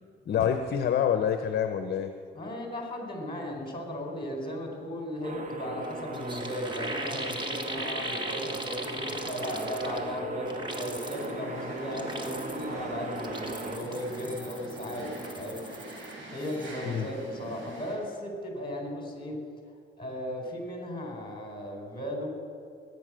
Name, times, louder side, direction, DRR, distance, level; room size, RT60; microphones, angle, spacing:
voice 1, 0.3-2.1 16.8-17.1, left 8 dB, 55° left, 7 dB, 0.8 m, -27 dB
voice 2, 2.3-15.6 16.3-19.4 20.0-22.3, equal, 25° left, 1 dB, 4.3 m, -36 dB
sound 1, 5.2-13.8, right 2 dB, 40° right, 1.6 m, -38 dB
sound 2, 5.8-5.9 6.1-10.1 10.5-11.3 11.8-12.7 13.1-16.1 16.4-16.7, right 1 dB, 25° right, 1.7 m, -39 dB
sound 3, 11.0-18.0, right 1 dB, 75° right, 4.9 m, -43 dB
19.0 x 9.5 x 6.3 m, 2.2 s
cardioid pair, 90°, 20 cm